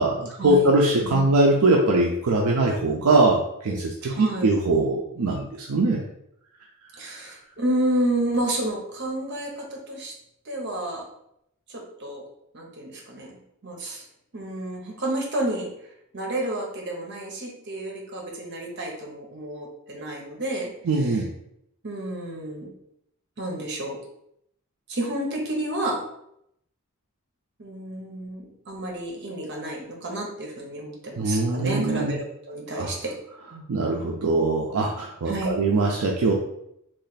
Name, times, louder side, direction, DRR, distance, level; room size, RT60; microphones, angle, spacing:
voice 1, 0.0-6.0 20.9-21.3 31.2-32.1 32.8-32.9 33.7-36.3, right 2 dB, 75° right, -1 dB, 0.5 m, -22 dB
voice 2, 1.0-1.3 4.0-4.6 7.0-10.1 10.4-11.0 11.7-12.2 12.5-13.4 13.6-14.0 14.3-15.7 16.1-21.2 21.8-22.7 23.4-24.0 24.9-26.0 27.6-33.1 33.5-33.7 35.3-35.6, right 1 dB, 55° right, 0 dB, 0.9 m, -30 dB
3.2 x 2.5 x 4.0 m, 0.76 s
head